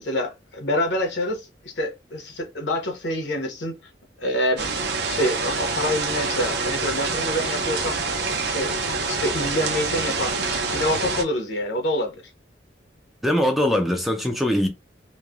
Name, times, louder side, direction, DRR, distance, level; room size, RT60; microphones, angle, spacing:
voice 1, 0.0-3.8 4.2-8.0 8.5-8.7 9.0-12.2, left 1 dB, 75° left, 0.9 m, -27 dB
sound 1, 4.6-11.2, right 4 dB, 60° right, 0.6 m, -26 dB
voice 2, 13.2-14.7, left 1 dB, ahead, 0.3 m, -21 dB
3.0 x 2.1 x 2.3 m
head